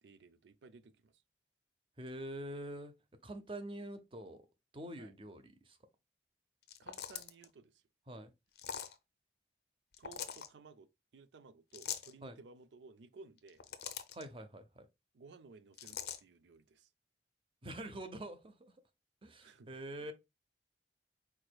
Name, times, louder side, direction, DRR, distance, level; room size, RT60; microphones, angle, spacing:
voice 1, 0.0-1.2 5.0-5.1 6.8-7.8 10.0-13.6 15.1-16.9 19.4-20.1, right 4 dB, 85° right, 0.5 m, -58 dB
voice 2, 2.0-2.9 3.2-4.4 4.7-5.8 8.1-8.3 12.2-12.4 14.1-14.9 17.6-18.7 19.2-20.1, right 1 dB, 30° right, 0.6 m, -45 dB
sound 1, 6.6-7.5 8.5-8.9 9.9-10.5 11.7-12.1 13.4-14.2 15.8-16.2, left 9 dB, 65° left, 0.5 m, -43 dB
4.7 x 4.4 x 2.3 m
head